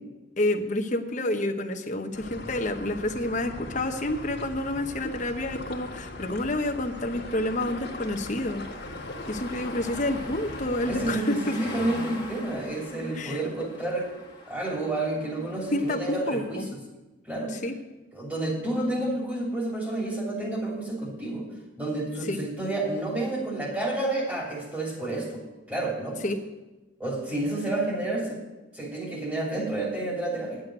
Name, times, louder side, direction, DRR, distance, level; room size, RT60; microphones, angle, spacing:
voice 1, 0.4-8.6 8.9-9.0 9.3-11.4 13.1-13.4 15.7-16.7 17.6-17.7 22.3-22.4 26.2-26.4, left 1 dB, 40° left, 5 dB, 1.0 m, -29 dB
sound 1, 2.1-11.1, left 1 dB, 60° left, 1.7 m, -39 dB
sound 2, 3.7-16.7, left 1 dB, 20° left, 1.7 m, -44 dB
voice 2, 10.9-14.1 14.5-16.6 17.2-17.5 18.1-21.4 21.8-25.4 25.7-26.2 27.0-28.4 28.7-30.6, right 2 dB, 10° right, -3 dB, 3.0 m, -30 dB
10.5 x 7.6 x 7.7 m, 1.1 s
head